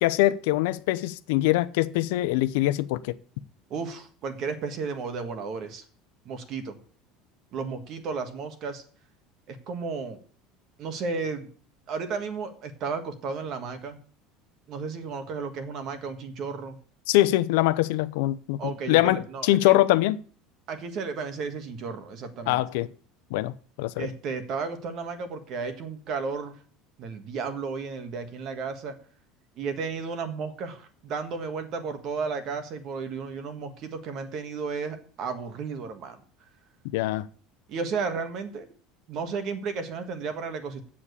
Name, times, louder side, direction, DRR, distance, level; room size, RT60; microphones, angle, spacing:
voice 1, 0.0-3.1 17.1-20.2 22.5-22.9 23.3-23.5 23.8-24.1 36.9-37.3, left 16 dB, 80° left, 0.7 m, -23 dB
voice 2, 3.7-5.8 6.2-6.8 7.5-8.8 9.5-10.2 10.8-11.5 11.9-14.0 14.7-16.8 18.6-19.8 20.7-22.6 24.0-26.6 27.0-29.0 29.6-36.2 37.7-38.7 39.1-40.9, right 5 dB, 40° right, 1.6 m, -33 dB
7.4 x 7.3 x 8.3 m
cardioid pair, 160°, 0 cm